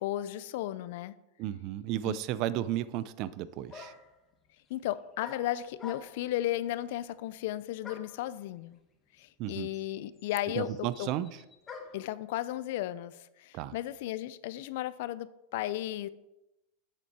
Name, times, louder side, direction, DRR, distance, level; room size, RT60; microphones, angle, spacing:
voice 1, 0.0-1.1 2.0-2.2 4.7-8.8 9.2-11.1 11.9-16.1, left 14 dB, 65° left, 16 dB, 0.4 m, -35 dB
voice 2, 1.4-3.9 9.4-9.7 10.6-11.4 13.5-13.8, right 13 dB, 45° right, 16 dB, 0.4 m, -33 dB
sound 1, 3.2-3.3 3.7-4.2 5.2-6.3 7.8-8.2 9.2-9.3 9.5-12.1, left 4 dB, 20° left, 1.2 m, -47 dB
7.9 x 7.4 x 4.3 m, 0.94 s
supercardioid pair, 145°, 0 cm